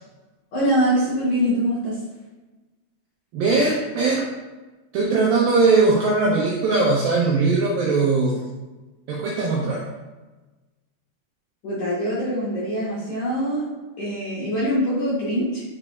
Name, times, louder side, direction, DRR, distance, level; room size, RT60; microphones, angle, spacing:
voice 1, 0.5-2.0 11.6-13.6 14.0-15.6, equal, 55° left, -9 dB, 2.4 m, -23 dB
voice 2, 3.3-4.3 4.9-8.4 9.1-9.8, right 3 dB, 90° right, -4 dB, 2.1 m, -20 dB
9.5 x 4.9 x 2.5 m, 1.2 s
omnidirectional pair, 5.2 m